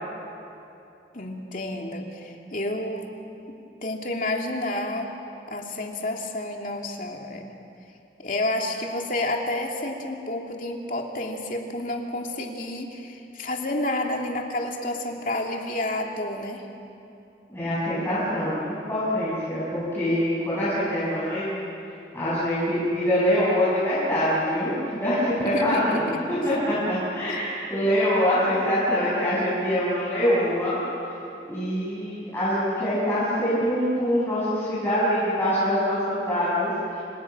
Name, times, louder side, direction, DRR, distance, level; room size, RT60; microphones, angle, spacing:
voice 1, 1.1-3.1 3.8-5.1 5.5-7.4 8.2-16.7 25.4-26.0 27.3-27.4, left 1 dB, 50° left, 1 dB, 2.9 m, -30 dB
voice 2, 17.5-21.5 22.1-26.0 26.3-30.8 31.5-36.7, equal, 15° left, -11 dB, 7.2 m, -24 dB
29.5 x 27.0 x 6.2 m, 2.8 s
head